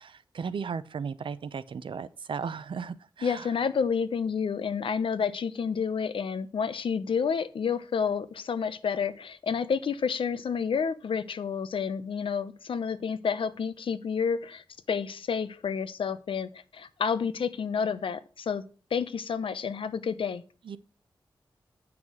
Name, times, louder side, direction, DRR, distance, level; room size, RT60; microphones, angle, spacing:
voice 1, 0.0-3.5 20.7-20.8, right 6 dB, 75° right, 0.7 m, -36 dB
voice 2, 3.2-18.6 18.9-20.4, left 6 dB, 85° left, 0.8 m, -30 dB
9.3 x 6.0 x 6.3 m
wide cardioid pair, 160°, 9 cm